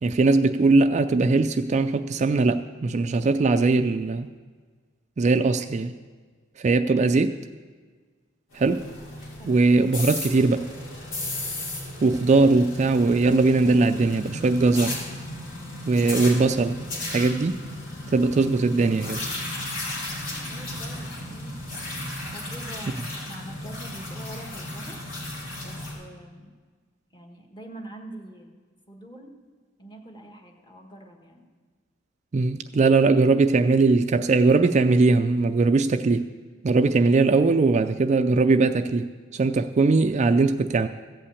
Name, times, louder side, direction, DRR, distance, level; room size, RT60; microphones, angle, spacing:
voice 1, 0.0-4.3 5.2-5.9 6.6-7.4 8.5-8.8 9.5-10.7 12.0-15.0 15.9-16.8 17.1-17.6 18.1-19.3 32.3-36.3 36.6-40.9, right 3 dB, 35° right, 9 dB, 0.4 m, -20 dB
sound 1, 8.5-25.9, left 1 dB, 85° left, 3.4 m, -35 dB
voice 2, 20.5-21.5 22.3-25.0 25.6-26.5 27.1-28.6 28.9-29.3 29.8-31.5, right 1 dB, 25° left, 3 dB, 1.5 m, -44 dB
14.5 x 5.6 x 8.4 m, 1.5 s
head